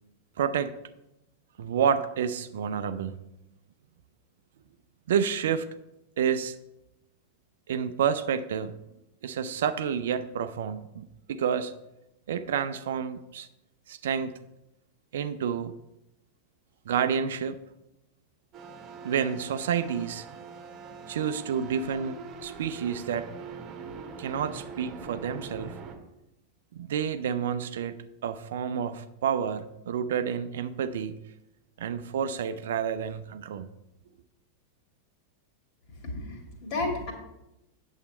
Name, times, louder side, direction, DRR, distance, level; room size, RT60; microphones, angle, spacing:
voice 1, 0.4-0.7 1.6-3.1 5.1-5.7 6.2-6.6 7.7-8.7 9.2-11.7 12.3-13.5 13.9-14.4 15.1-15.7 16.9-17.6 19.0-20.3 21.1-23.3 24.2-25.7 26.7-31.2 31.8-33.7, right 7 dB, 60° right, 12 dB, 0.5 m, -29 dB
sound 1, 18.5-26.0, right 5 dB, 35° right, 1.3 m, -43 dB
voice 2, 36.0-37.1, left 2 dB, 45° left, 2 dB, 2.4 m, -32 dB
8.7 x 7.2 x 4.2 m, 0.90 s
figure-of-eight pair, 90°, 0 cm